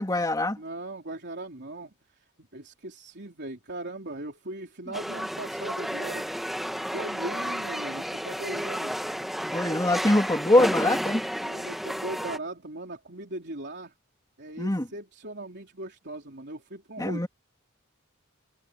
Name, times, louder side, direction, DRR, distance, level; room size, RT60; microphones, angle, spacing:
voice 1, 0.0-0.6 9.5-11.2 14.6-14.9 17.0-17.3, left 1 dB, 15° left, 2.8 m, -23 dB
voice 2, 0.6-1.9 2.5-6.3 6.9-9.0 11.4-13.9 14.4-17.3, right 2 dB, 50° right, 3.6 m, -39 dB
sound 1, 4.9-12.4, equal, ahead, 1.5 m, -32 dB
head